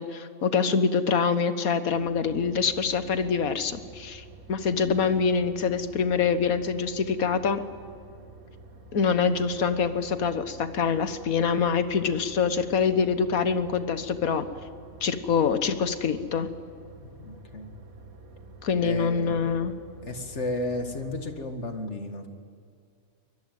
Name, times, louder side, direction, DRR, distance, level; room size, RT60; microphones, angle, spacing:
voice 1, 0.0-7.6 8.9-14.4 15.0-16.5 18.6-19.7, left 6 dB, 90° left, 11 dB, 1.7 m, -25 dB
sound 1, 1.9-21.4, right 3 dB, 90° right, 2.5 m, -49 dB
voice 2, 17.0-17.7 18.8-19.5 20.0-22.3, left 2 dB, 55° left, 6 dB, 2.3 m, -33 dB
24.0 x 21.5 x 9.3 m, 2.3 s
omnidirectional pair, 1.4 m